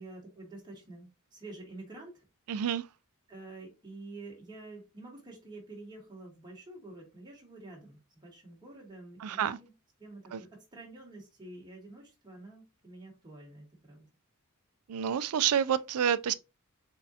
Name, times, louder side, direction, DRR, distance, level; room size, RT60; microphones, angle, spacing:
voice 1, 0.0-2.2 3.3-9.7 10.0-14.0, right 2 dB, 20° right, 1.5 m, -48 dB
voice 2, 2.5-2.8 9.2-9.6 10.3-10.4 14.9-16.3, right 8 dB, 85° right, 0.4 m, -28 dB
4.1 x 3.7 x 2.8 m
head